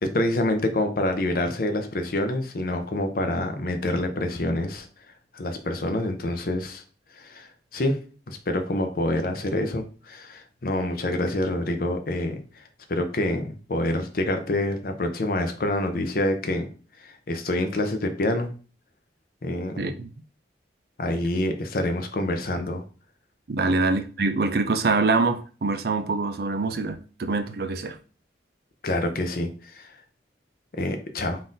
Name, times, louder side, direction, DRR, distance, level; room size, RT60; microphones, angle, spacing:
voice 1, 0.0-4.9 5.3-6.8 7.1-8.0 8.3-12.6 12.9-16.7 17.0-18.5 19.4-19.8 21.0-22.8 28.8-30.0 30.7-31.4, left 1 dB, 50° left, 0.6 m, -27 dB
voice 2, 19.8-20.1 23.5-28.0, right 3 dB, 55° right, 0.5 m, -25 dB
3.8 x 2.5 x 3.9 m
head